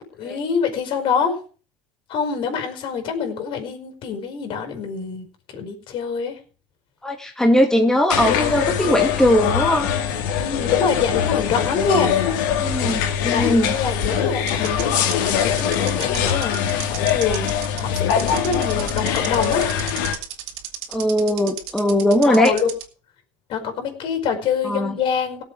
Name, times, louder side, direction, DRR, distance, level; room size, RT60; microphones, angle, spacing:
voice 1, 0.2-1.4 2.1-5.3 5.5-6.4 10.4-12.2 13.3-17.4 17.7-19.7 22.2-22.7 23.5-25.4, left 6 dB, 55° left, 6 dB, 5.2 m, -25 dB
voice 2, 7.0-9.9 12.6-13.7 20.9-22.5 24.6-25.0, equal, 5° left, 3 dB, 2.2 m, -19 dB
sound 1, 8.1-20.2, left 8 dB, 75° left, 3.0 m, -22 dB
sound 2, 14.5-22.8, right 13 dB, 65° right, 2.6 m, -34 dB
18.5 x 7.8 x 5.0 m, 0.38 s
hypercardioid pair, 90°, 11 cm